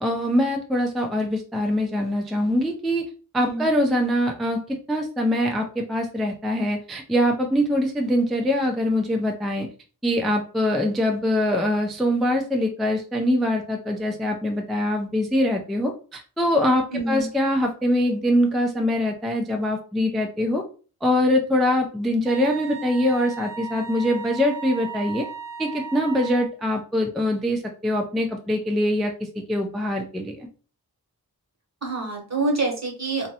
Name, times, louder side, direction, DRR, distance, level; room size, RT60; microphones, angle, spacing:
voice 1, 0.0-3.0 3.3-9.7 10.0-20.6 21.0-25.3 25.6-30.5, left 1 dB, ahead, 3 dB, 0.3 m, -23 dB
voice 2, 3.4-3.7 16.9-17.3 31.8-33.3, right 3 dB, 45° right, 1 dB, 0.9 m, -26 dB
Wind instrument woodwind instrument, 22.3-26.5, right 7 dB, 60° right, 0.5 m, -36 dB
2.5 x 2.0 x 2.7 m, 0.38 s
wide cardioid pair, 55°, 38 cm